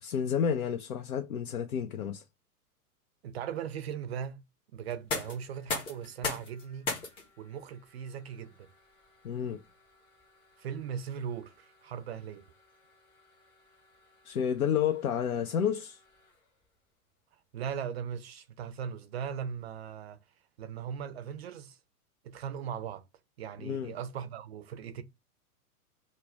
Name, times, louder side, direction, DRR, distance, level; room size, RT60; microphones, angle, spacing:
voice 1, 0.0-2.2 9.2-9.6 14.2-16.0 23.6-23.9, left 8 dB, 70° left, 0.5 m, -30 dB
voice 2, 3.2-4.4 4.7-6.9 7.4-8.7 10.6-12.4 17.5-20.2 20.6-21.8 22.2-23.0 23.4-25.0, right 8 dB, 45° right, 0.5 m, -38 dB
sound 1, 4.8-16.6, left 3 dB, 10° left, 0.5 m, -43 dB
2.4 x 2.0 x 3.2 m
figure-of-eight pair, 105°, 45 cm